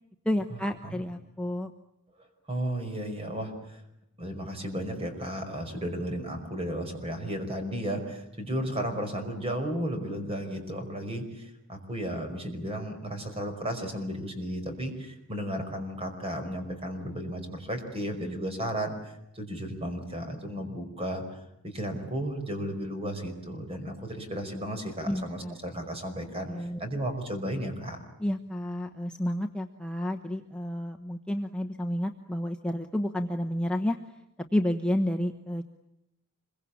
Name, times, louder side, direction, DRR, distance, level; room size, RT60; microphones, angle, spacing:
voice 1, 0.2-1.7 25.1-25.6 26.5-26.8 28.2-34.0 34.5-35.6, left 1 dB, 5° left, 3 dB, 1.0 m, -30 dB
voice 2, 2.5-3.8 4.2-21.2 21.6-26.5 26.8-28.0, equal, 25° right, 6 dB, 5.4 m, -34 dB
26.0 x 23.5 x 8.6 m, 0.85 s
head